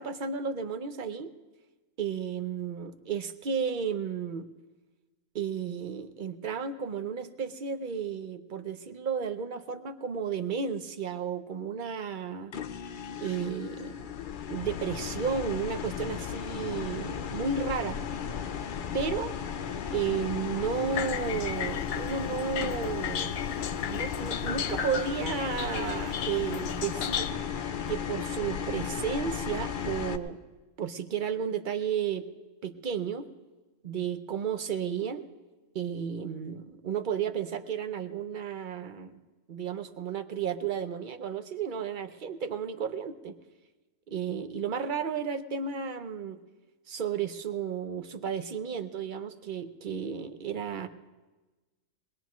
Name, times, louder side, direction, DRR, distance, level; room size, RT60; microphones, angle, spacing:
voice 1, 0.0-1.3 2.0-4.5 5.3-12.5 13.2-14.1 14.5-18.0 18.9-19.4 19.9-23.4 23.9-27.4 27.9-30.4 30.8-32.3 32.6-33.3 33.8-35.3 35.7-39.2 39.5-43.4 44.1-46.4 46.9-50.9, right 7 dB, 45° right, 9 dB, 0.7 m, -33 dB
sound 1, 12.5-30.2, left 7 dB, 50° left, 0.6 m, -35 dB
sound 2, 20.9-27.3, left 8 dB, 80° left, 1.0 m, -35 dB
21.0 x 20.5 x 3.1 m, 1.2 s
omnidirectional pair, 1.4 m